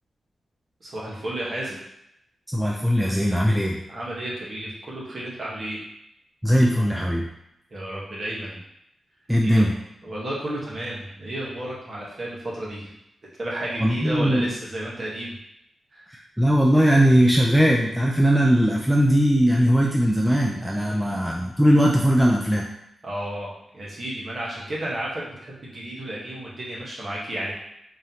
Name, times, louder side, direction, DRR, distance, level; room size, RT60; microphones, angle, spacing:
voice 1, 0.8-1.8 3.9-5.8 7.7-8.6 9.4-9.7 10.0-12.9 13.4-15.3 15.9-16.1 23.0-27.5, right 1 dB, 40° right, -5 dB, 1.1 m, -32 dB
voice 2, 2.5-3.8 6.4-7.3 9.3-9.8 13.8-14.5 16.1-22.7, equal, ahead, -2 dB, 0.3 m, -19 dB
3.9 x 3.1 x 2.8 m, 0.80 s
wide cardioid pair, 140°, 0 cm